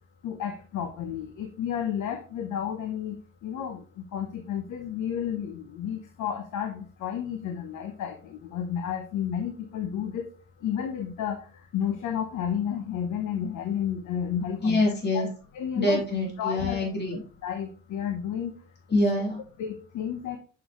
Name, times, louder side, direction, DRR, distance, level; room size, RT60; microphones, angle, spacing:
voice 1, 0.2-10.3 10.6-15.3 15.5-16.0 16.4-16.8 17.4-18.6 19.6-20.4, left 8 dB, 75° left, 6 dB, 0.9 m, -32 dB
voice 2, 14.6-15.3 15.7-17.2 18.9-19.4, left 2 dB, 35° left, -2 dB, 3.2 m, -25 dB
6.3 x 6.1 x 3.0 m, 0.38 s
cardioid pair, 90°, 30 cm